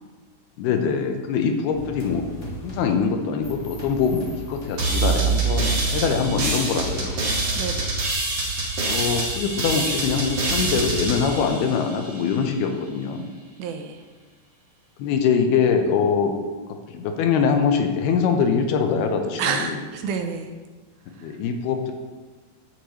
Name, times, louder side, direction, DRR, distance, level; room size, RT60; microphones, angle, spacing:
voice 1, 0.6-2.3 2.6-7.3 8.8-13.3 15.0-16.3 16.9-19.8 21.2-21.9, left 6 dB, 80° left, 5 dB, 2.8 m, -23 dB
Rumbling Drone, 1.7-5.4 6.1-6.5, equal, 40° left, 1.4 m, -38 dB
sound 1, 4.8-12.3, right 3 dB, 40° right, 1.8 m, -25 dB
voice 2, 7.6-8.0 13.6-14.0 19.4-20.5, right 6 dB, 80° right, 5 dB, 2.4 m, -29 dB
14.5 x 6.6 x 3.1 m, 1.3 s
omnidirectional pair, 4.5 m